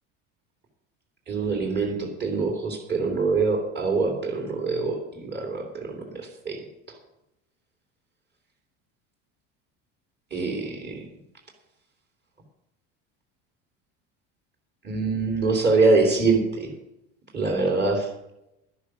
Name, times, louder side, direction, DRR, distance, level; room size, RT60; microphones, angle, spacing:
voice 1, 1.3-5.0 5.3-6.0 6.4-6.6 10.3-11.0 14.8-16.7 17.3-18.1, right 3 dB, 35° right, 2 dB, 3.3 m, -24 dB
11.5 x 9.9 x 6.3 m, 0.85 s
cardioid pair, 120°, 31 cm